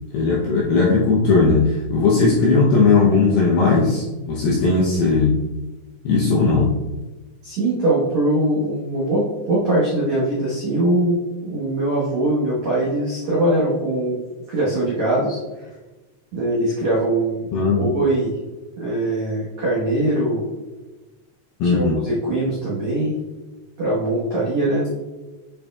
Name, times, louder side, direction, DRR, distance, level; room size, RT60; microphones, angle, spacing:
voice 1, 0.1-5.4 6.0-6.8 17.5-17.9 21.6-22.0, left 4 dB, 80° left, -4 dB, 2.2 m, -17 dB
voice 2, 7.4-14.2 14.5-15.7 16.3-17.5 17.8-18.4 18.8-20.4 21.6-23.1 23.8-24.9, right 1 dB, 80° right, -7 dB, 1.5 m, -22 dB
9.4 x 5.3 x 2.4 m, 1.1 s
omnidirectional pair, 5.5 m